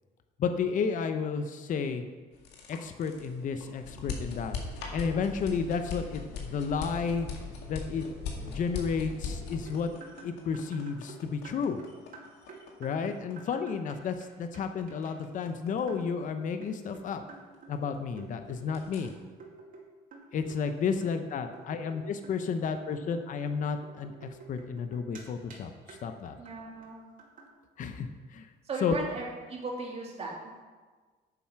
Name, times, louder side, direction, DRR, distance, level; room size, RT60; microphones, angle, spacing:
voice 1, 0.4-2.0 2.7-4.6 4.9-7.3 7.7-8.1 8.4-9.9 10.2-11.8 12.8-17.2 17.7-19.1 20.3-26.4 27.8-28.5 28.8-28.9, left 5 dB, 50° left, 8 dB, 0.8 m, -32 dB
sound 1, 2.3-18.2 18.5-19.1, left 4 dB, 90° left, 1.9 m, -40 dB
sound 2, 9.7-14.3 14.5-14.6 14.9-15.1 15.9-16.1 16.6-19.9 20.1-20.7 21.0-25.2 25.5-25.6 25.9-26.0 26.3-26.5 26.8-26.9 27.2-27.5, right 4 dB, 55° right, 2.4 m, -50 dB
voice 2, 26.4-27.1 28.6-30.3, right 3 dB, 40° right, -2 dB, 2.7 m, -37 dB
9.2 x 7.4 x 5.8 m, 1.4 s
cardioid pair, 110°, 17 cm